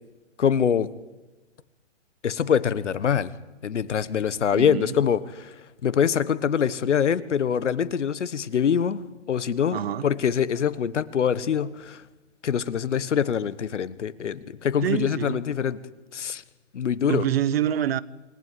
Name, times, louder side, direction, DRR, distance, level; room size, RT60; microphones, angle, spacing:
voice 1, 0.4-0.9 2.2-3.3 3.6-5.5 5.8-9.0 9.3-12.0 12.4-15.8 16.1-16.4 16.7-17.2, left 8 dB, 70° left, 1.4 m, -24 dB
voice 2, 4.5-5.0 9.7-10.1 14.8-15.4 17.0-18.0, right 10 dB, 55° right, 1.1 m, -26 dB
27.5 x 16.0 x 9.5 m
hypercardioid pair, 140°, 37 cm